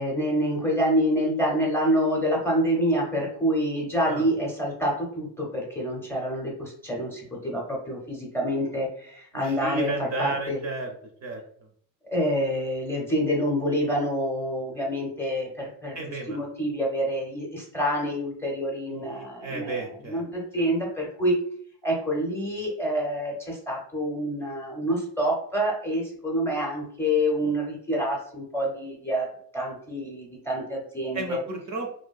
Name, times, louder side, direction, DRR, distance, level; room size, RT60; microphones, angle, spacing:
voice 1, 0.0-10.6 12.1-21.3 21.8-29.3 29.5-31.4, equal, 5° left, -2 dB, 0.5 m, -27 dB
voice 2, 9.3-10.9 11.2-11.4 16.0-16.4 18.9-20.2 31.1-31.9, right 3 dB, 45° right, 2 dB, 0.5 m, -32 dB
2.7 x 2.2 x 2.3 m, 0.63 s
cardioid pair, 125°, 40 cm